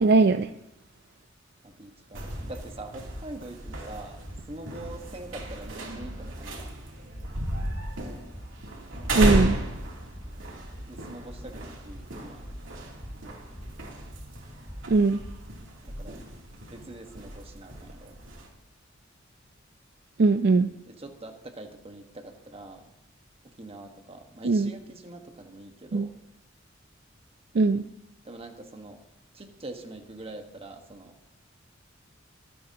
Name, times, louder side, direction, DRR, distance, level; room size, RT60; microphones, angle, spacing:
voice 1, 0.0-0.5 9.1-9.6 14.9-15.2 20.2-20.7 24.4-24.7 25.9-26.1 27.5-27.9, right 3 dB, 55° right, 10 dB, 0.4 m, -20 dB
voice 2, 1.6-4.2 4.5-6.7 10.9-12.5 15.8-16.2 16.7-18.2 20.9-22.9 23.4-26.1 28.2-29.0 29.3-31.1, right 2 dB, 30° right, 4 dB, 1.4 m, -44 dB
sound 1, 2.1-18.5, right 1 dB, 85° right, 2.9 m, -34 dB
sound 2, 2.4-15.6, equal, 15° left, 2.3 m, -45 dB
24.5 x 9.1 x 2.9 m, 0.84 s
head